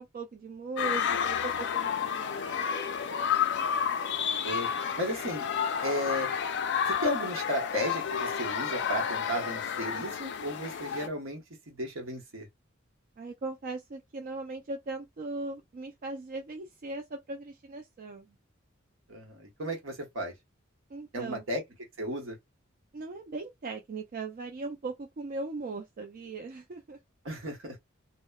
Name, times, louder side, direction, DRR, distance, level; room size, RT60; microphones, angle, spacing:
voice 1, 0.0-3.2 13.2-18.4 20.9-21.4 22.9-27.0, right 3 dB, 45° right, 0.4 m, -39 dB
sound 1, 0.8-11.1, left 7 dB, 60° left, 0.4 m, -31 dB
voice 2, 5.0-5.4 5.8-6.3 6.9-12.5 19.1-20.3 21.1-21.6 22.0-22.4 27.2-27.8, equal, 70° right, 1.0 m, -34 dB
2.9 x 2.0 x 2.2 m
head